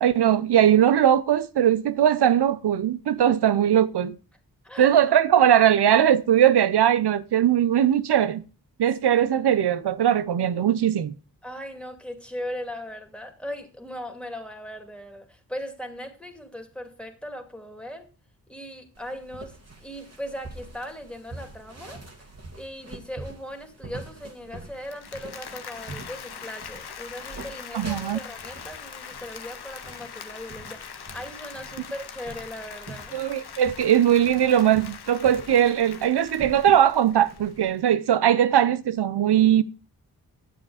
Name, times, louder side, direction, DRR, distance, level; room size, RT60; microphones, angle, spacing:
voice 1, 0.0-4.2 4.8-8.4 8.8-11.1 27.7-28.2 33.1-39.6, right 10 dB, 85° right, 0.7 m, -20 dB
voice 2, 11.4-18.1 18.5-22.0 22.5-33.2, equal, 5° left, 2.3 m, -38 dB
sound 1, 19.0-37.7, right 2 dB, 40° right, 2.0 m, -45 dB
Applause, 24.7-37.8, left 7 dB, 75° left, 0.9 m, -42 dB
10.0 x 7.3 x 4.8 m
cardioid pair, 40°, 39 cm